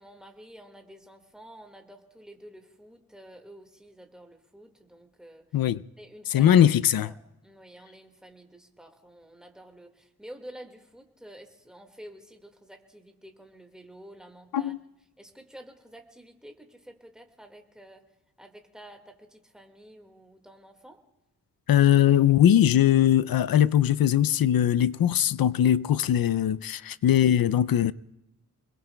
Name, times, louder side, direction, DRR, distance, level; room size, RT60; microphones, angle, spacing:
voice 1, 0.0-5.7 6.0-6.6 7.0-7.1 7.4-14.7 15.2-18.1 18.4-21.0, right 1 dB, ahead, 1.8 m, -49 dB
voice 2, 6.3-7.1 14.5-14.8 21.7-27.9, left 10 dB, 80° left, 0.5 m, -21 dB
28.5 x 21.5 x 2.2 m
wide cardioid pair, 95°, 35 cm